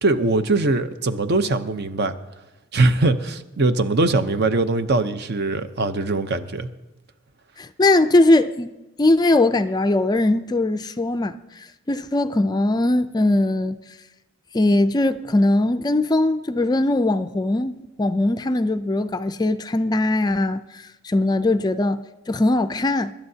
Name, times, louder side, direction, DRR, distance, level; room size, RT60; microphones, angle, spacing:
voice 1, 0.0-2.1 2.7-6.7, right 2 dB, 50° right, 0.7 m, -21 dB
voice 2, 7.6-8.7 9.0-13.8 14.5-23.1, left 2 dB, 20° left, 0.4 m, -20 dB
24.5 x 12.0 x 2.8 m
head